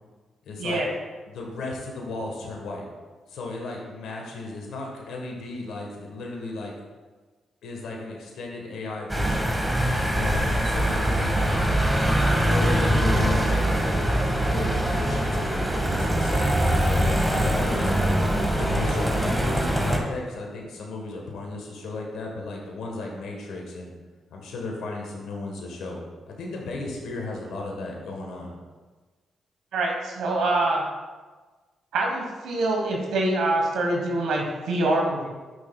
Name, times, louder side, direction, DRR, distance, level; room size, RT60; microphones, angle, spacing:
voice 1, 0.4-0.8 1.3-2.8 3.3-6.7 7.6-9.5 10.1-11.6 12.3-17.9 18.6-23.9 24.3-26.0 26.3-28.5, left 2 dB, 75° left, 0 dB, 1.2 m, -35 dB
sound 1, 9.1-20.0, right 1 dB, 10° right, 1.5 m, -23 dB
voice 2, 29.7-30.9 31.9-35.3, right 2 dB, 80° right, 0 dB, 1.2 m, -25 dB
11.0 x 5.9 x 2.3 m, 1.3 s
supercardioid pair, 55°, 0 cm